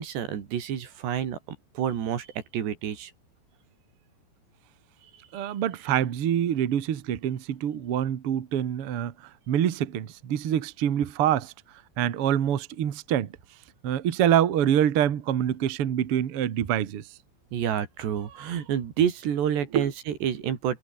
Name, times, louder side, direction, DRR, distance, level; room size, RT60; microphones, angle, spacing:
voice 1, 0.0-1.4 1.7-2.3 2.5-3.1 17.5-20.8, right 9 dB, 70° right, 4.9 m, -28 dB
voice 2, 5.3-11.5 12.0-13.4 13.8-17.1 19.7-19.9, right 10 dB, 90° right, 1.2 m, -25 dB
omnidirectional pair, 5.3 m